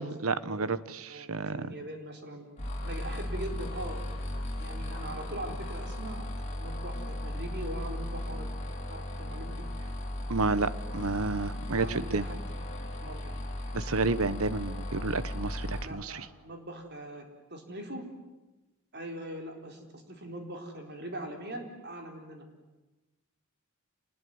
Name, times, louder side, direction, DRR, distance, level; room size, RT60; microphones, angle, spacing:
voice 1, 0.0-1.7 10.3-12.3 13.7-16.2, right 3 dB, 70° right, 15 dB, 1.1 m, -31 dB
voice 2, 1.1-2.5 2.8-4.0 4.6-8.5 8.9-9.7 11.8-12.4 13.0-13.4 15.8-18.0 18.9-22.5, right 1 dB, 50° right, 4 dB, 4.1 m, -41 dB
sound 1, 2.6-15.8, left 1 dB, 30° left, 4.4 m, -36 dB
28.0 x 20.5 x 9.5 m, 1.1 s
head